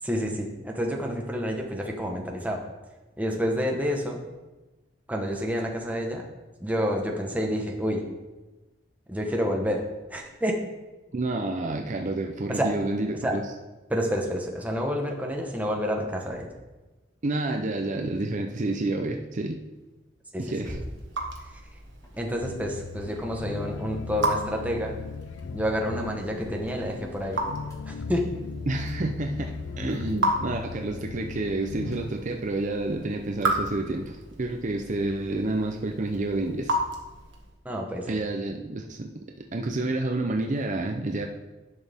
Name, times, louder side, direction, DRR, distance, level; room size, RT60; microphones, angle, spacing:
voice 1, 0.0-2.6 3.2-4.2 5.1-6.3 6.6-8.1 9.1-9.8 10.1-10.5 12.5-12.7 13.2-13.4 13.9-16.5 20.3-20.8 21.4-21.6 22.2-25.0 25.5-27.4 27.8-28.3 37.6-38.2, equal, 10° right, 1 dB, 1.1 m, -29 dB
voice 2, 11.1-13.4 17.2-19.6 20.4-20.8 28.7-36.8 38.1-41.3, right 2 dB, 40° right, 3 dB, 0.6 m, -29 dB
sound 1, 17.8-24.3 24.7-34.5, equal, 15° left, 1.9 m, -51 dB
Raindrop / Drip, 20.4-37.6, right 1 dB, 80° right, 1.5 m, -35 dB
sound 2, 22.4-32.1, left 5 dB, 75° left, 0.4 m, -38 dB
11.0 x 6.3 x 3.5 m, 1.1 s
head